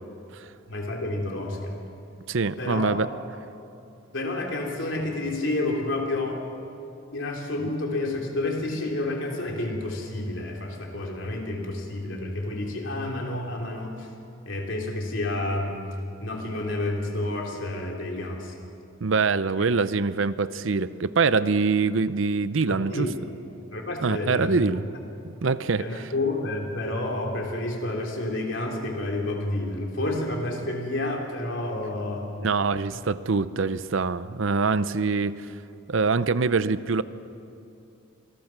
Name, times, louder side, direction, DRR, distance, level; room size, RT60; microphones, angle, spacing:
voice 1, 0.7-1.8 2.6-3.0 4.1-6.4 7.1-14.1 14.5-15.8 16.2-18.5 22.7-23.2 23.7-24.8 25.8-32.3, left 2 dB, 65° left, 0 dB, 3.6 m, -30 dB
voice 2, 2.3-3.1 19.0-23.1 24.0-24.8 25.2-26.1 32.4-35.5 35.9-37.0, right 4 dB, 65° right, 15 dB, 0.6 m, -24 dB
26.5 x 20.0 x 6.0 m, 2.7 s
head